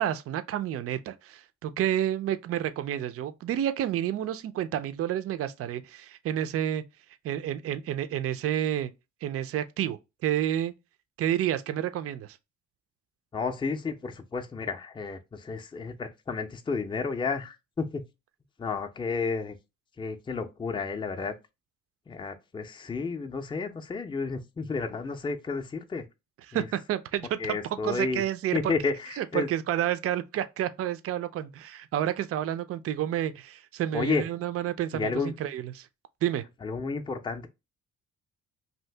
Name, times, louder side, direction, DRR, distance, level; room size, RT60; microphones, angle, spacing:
voice 1, 0.0-6.8 7.2-8.9 9.2-10.7 11.2-12.4 26.5-27.6 27.8-28.7 29.2-35.9 36.2-36.4, right 11 dB, 50° right, 0.4 m, -30 dB
voice 2, 13.3-18.1 18.6-19.6 20.0-21.3 22.1-26.1 26.5-26.7 27.4-28.2 28.5-29.5 33.9-34.3 34.9-35.4 36.6-37.5, left 4 dB, 15° left, 0.5 m, -31 dB
2.8 x 2.5 x 3.2 m
cardioid pair, 90°, 30 cm